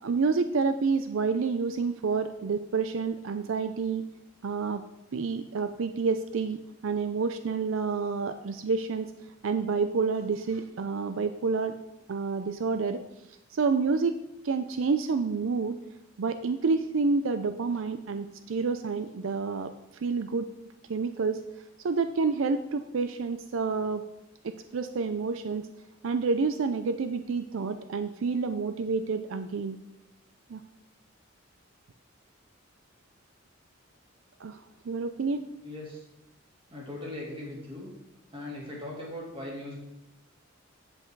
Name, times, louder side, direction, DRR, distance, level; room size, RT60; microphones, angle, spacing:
voice 1, 0.0-4.0 4.4-4.8 5.1-9.1 9.4-11.7 12.1-13.0 13.5-14.1 14.4-15.8 16.2-19.7 20.0-20.5 20.9-21.4 21.8-24.0 24.4-25.7 26.0-29.8 30.5-30.6 34.4-34.6 34.9-35.4, right 4 dB, 75° right, 10 dB, 0.5 m, -28 dB
voice 2, 35.6-36.0 36.7-37.9 38.3-39.7, left 1 dB, 25° right, -3 dB, 2.8 m, -39 dB
8.1 x 8.1 x 4.6 m, 0.92 s
head